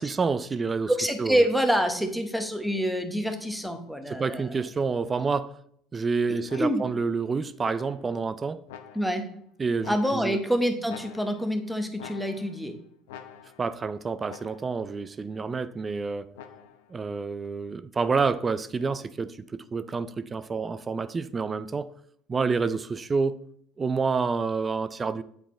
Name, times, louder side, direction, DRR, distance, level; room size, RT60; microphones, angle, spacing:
voice 1, 0.0-0.9 1.2-1.4 4.1-5.5 5.9-8.6 9.6-10.4 13.6-16.3 16.9-21.9 22.3-23.4 23.8-25.2, right 4 dB, 25° right, 0.4 m, -28 dB
voice 2, 0.9-4.6 6.3-6.8 8.9-9.3 9.9-12.8, equal, ahead, 1.0 m, -27 dB
sound 1, 6.5-7.1 7.6-8.2 8.7-9.3 9.8-10.5 10.9-11.6 12.0-12.7 13.1-13.8 14.3-14.9 16.3-17.0, left 8 dB, 85° left, 0.6 m, -47 dB
7.9 x 4.0 x 3.7 m
supercardioid pair, 85°, 0 cm